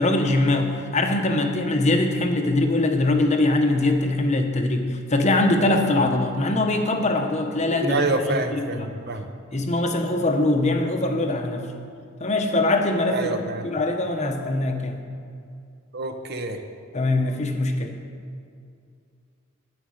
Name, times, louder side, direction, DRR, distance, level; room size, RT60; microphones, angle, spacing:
voice 1, 0.0-9.1 9.5-11.7 12.2-15.0 16.9-17.9, left 2 dB, 35° left, 4 dB, 0.9 m, -22 dB
voice 2, 7.7-9.3 13.1-13.7 15.9-16.6, right 2 dB, 50° right, 6 dB, 0.8 m, -27 dB
9.7 x 9.4 x 6.4 m, 2.3 s
head